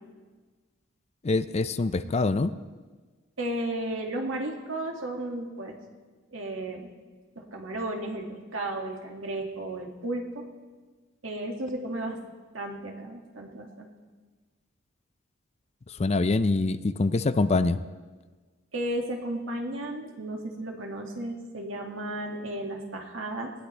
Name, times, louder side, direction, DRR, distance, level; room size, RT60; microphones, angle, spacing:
voice 1, 1.2-2.5 15.9-17.8, left 3 dB, 35° left, 13 dB, 0.4 m, -25 dB
voice 2, 3.4-5.8 6.3-6.9 7.4-10.5 11.2-12.2 12.5-13.9 18.7-23.5, right 1 dB, 80° right, 1 dB, 2.1 m, -34 dB
20.0 x 15.5 x 3.3 m, 1.4 s
head